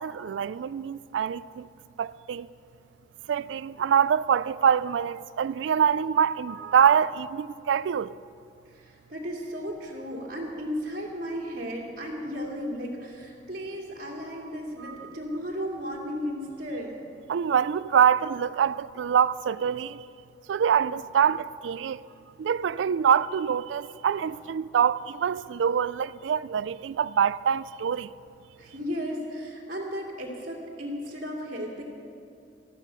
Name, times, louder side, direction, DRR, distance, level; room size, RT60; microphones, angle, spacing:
voice 1, 0.0-1.7 2.0-2.5 3.3-8.1 14.8-15.1 17.3-20.0 20.5-22.0 22.4-28.1, right 8 dB, 80° right, 0.3 m, -25 dB
voice 2, 8.7-16.9 28.6-31.8, equal, 55° right, 2.3 m, -35 dB
13.5 x 12.0 x 6.2 m
head